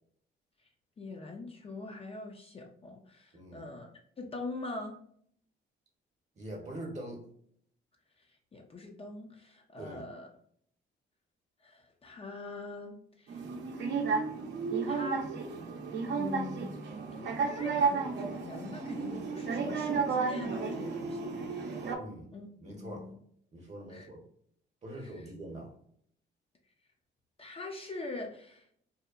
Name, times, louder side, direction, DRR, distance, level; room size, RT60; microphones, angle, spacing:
voice 1, 1.0-3.9 4.2-5.0 8.2-10.3 11.6-13.5 14.9-15.3 16.2-16.7 17.1-21.9 22.3-22.5 22.8-23.2 23.9-24.1 25.0-25.1 27.4-28.7, left 3 dB, 30° left, 2 dB, 0.4 m, -43 dB
voice 2, 3.3-3.7 6.4-7.2 9.8-10.1 22.0-22.3 22.6-23.1 23.5-24.2 24.8-25.7, right 1 dB, 35° right, 0 dB, 0.8 m, -43 dB
sound 1, 13.3-22.0, right 5 dB, 65° right, 0.6 m, -33 dB
2.7 x 2.1 x 2.3 m, 0.64 s
cardioid pair, 90°, 20 cm